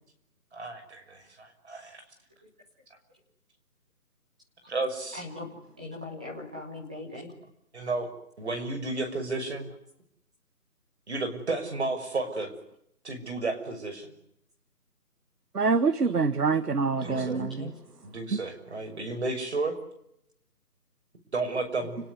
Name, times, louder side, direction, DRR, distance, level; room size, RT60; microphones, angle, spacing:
voice 1, 0.5-2.0 4.7-5.2 7.7-9.7 11.1-12.5 13.0-14.1 17.0-17.4 18.0-19.7 21.3-22.0, right 3 dB, 45° right, 6.2 m, -32 dB
voice 2, 5.1-5.5 5.8-7.3 17.0-17.7 21.8-21.9, left 1 dB, 5° right, 1.3 m, -40 dB
voice 3, 15.5-17.7 18.3-18.4, right 4 dB, 75° right, 1.9 m, -25 dB
29.5 x 20.0 x 9.7 m
figure-of-eight pair, 175°, 47 cm